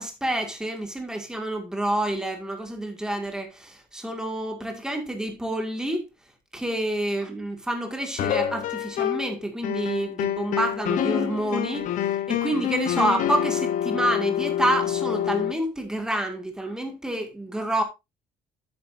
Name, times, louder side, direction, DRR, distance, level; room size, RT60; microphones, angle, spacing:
voice 1, 0.0-6.0 6.5-17.8, right 1 dB, 5° right, 1.9 m, -28 dB
sound 1, 8.2-9.3 9.6-15.5, left 11 dB, 55° left, 0.9 m, -27 dB
10.0 x 8.8 x 2.5 m
cardioid pair, 165°, 16 cm